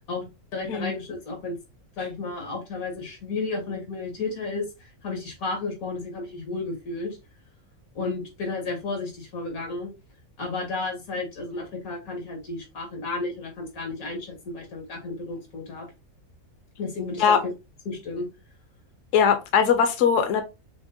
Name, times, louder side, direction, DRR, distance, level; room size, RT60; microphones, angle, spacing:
voice 1, 0.0-1.6 2.0-7.2 8.0-9.9 10.4-15.9 16.8-17.4 17.9-18.3, left 3 dB, 90° left, 1.9 m, -32 dB
voice 2, 19.1-20.4, left 7 dB, 70° left, 0.9 m, -20 dB
5.9 x 2.1 x 2.5 m
omnidirectional pair, 1.4 m